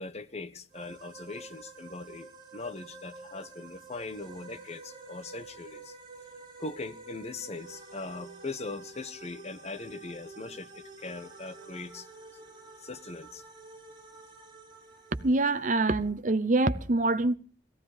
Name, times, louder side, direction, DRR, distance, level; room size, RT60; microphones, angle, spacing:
voice 1, 0.0-5.9 6.6-12.1 12.8-13.4, left 3 dB, 35° left, 1.1 m, -40 dB
sound 1, 0.7-16.1, right 3 dB, 25° right, 4.7 m, -49 dB
voice 2, 15.2-17.4, right 2 dB, 45° right, 0.9 m, -25 dB
18.5 x 15.5 x 5.0 m
head